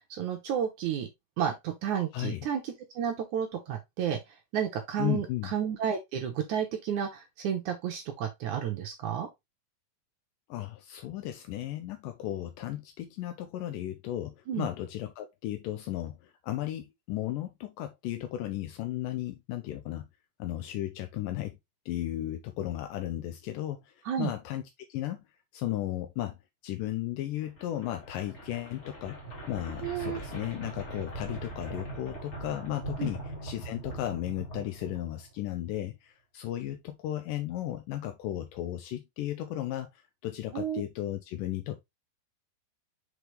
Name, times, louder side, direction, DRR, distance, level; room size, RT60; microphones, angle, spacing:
voice 1, 0.1-1.1 1.4-4.2 4.5-9.3 14.5-14.7 24.1-24.3 29.8-30.2 33.0-33.1 40.5-40.8, right 8 dB, 70° right, 2.0 m, -31 dB
voice 2, 2.1-2.5 5.0-5.5 10.5-20.1 20.4-21.6 21.9-25.2 25.5-26.4 26.6-29.2 29.5-41.8, left 13 dB, 80° left, 2.0 m, -35 dB
sound 1, 27.4-35.5, right 3 dB, 25° left, 1.6 m, -41 dB
6.1 x 5.0 x 3.2 m
omnidirectional pair, 4.4 m